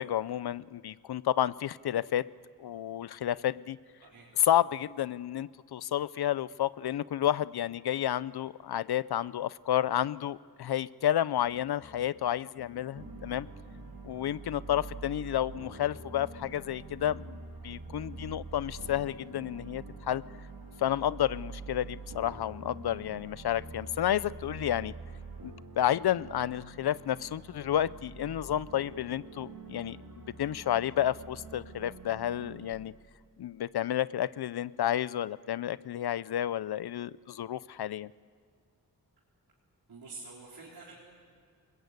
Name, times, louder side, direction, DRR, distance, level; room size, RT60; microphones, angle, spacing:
voice 1, 0.0-2.2 2.6-3.8 4.4-13.5 14.0-17.4 17.6-20.2 20.8-24.9 25.4-30.0 30.4-32.9 33.4-38.1, left 11 dB, 90° left, 19 dB, 0.6 m, -31 dB
sound 1, 11.4-19.9, left 4 dB, 35° left, 1.6 m, -58 dB
sound 2, 12.9-32.7, right 3 dB, 70° right, 3.1 m, -46 dB
voice 2, 39.9-41.0, right 3 dB, 90° right, -6 dB, 4.2 m, -47 dB
29.5 x 21.0 x 8.3 m, 2.1 s
wide cardioid pair, 150°, 37 cm